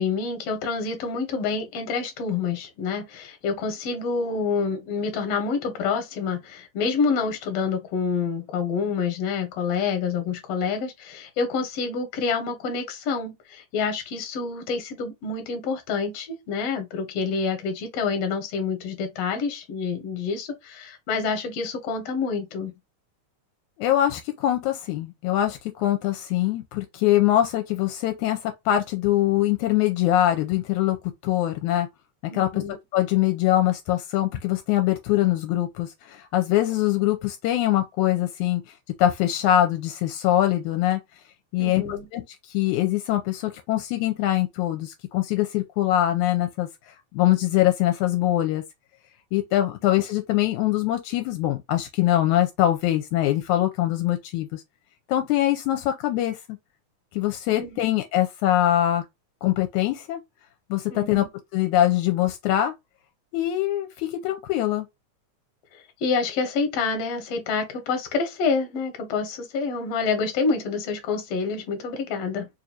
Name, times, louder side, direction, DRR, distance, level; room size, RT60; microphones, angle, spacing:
voice 1, 0.0-22.7 32.3-32.7 41.6-42.1 57.6-57.9 60.9-61.3 66.0-72.5, left 5 dB, 65° left, 1.9 m, -27 dB
voice 2, 23.8-31.0 31.2-31.9 32.3-32.6 32.9-38.6 39.0-41.0 41.5-46.7 47.1-48.6 49.3-54.6 55.1-56.4 57.1-59.1 59.4-60.2 60.7-61.2 61.5-62.7 63.3-64.9, left 13 dB, 80° left, 2.0 m, -23 dB
4.7 x 2.5 x 2.7 m
omnidirectional pair, 3.5 m